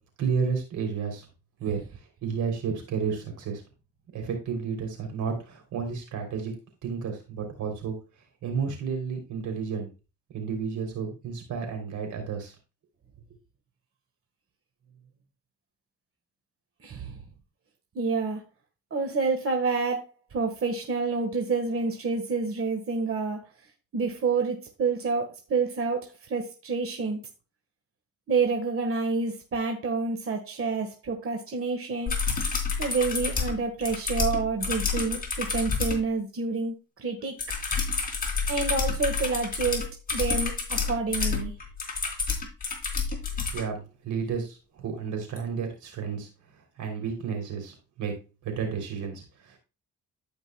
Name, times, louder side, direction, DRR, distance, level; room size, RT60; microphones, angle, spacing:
voice 1, 0.2-1.2 1.6-3.6 4.1-6.5 6.8-8.0 8.4-9.9 10.3-12.5 43.5-46.3 46.8-48.1 48.4-49.6, right 6 dB, 75° right, 3 dB, 3.3 m, -32 dB
voice 2, 16.8-17.2 17.9-18.4 18.9-23.5 23.9-27.2 28.3-32.2 32.8-37.3 38.5-41.5, right 4 dB, 45° right, 4 dB, 1.6 m, -28 dB
sound 1, 32.1-36.0 37.4-43.6 45.4-45.5, left 4 dB, 30° left, 3.2 m, -29 dB
15.0 x 5.3 x 2.3 m, 0.30 s
cardioid pair, 90°, 30 cm